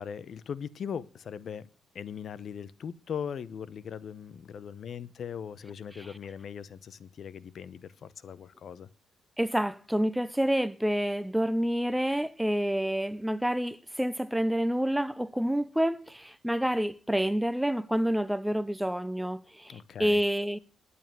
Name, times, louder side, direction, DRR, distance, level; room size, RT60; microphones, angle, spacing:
voice 1, 0.0-1.7 1.9-8.9 19.7-20.2, left 7 dB, 55° left, 0.8 m, -39 dB
voice 2, 9.4-20.6, equal, 5° right, 0.6 m, -28 dB
11.0 x 8.5 x 8.8 m
cardioid pair, 90°, 0 cm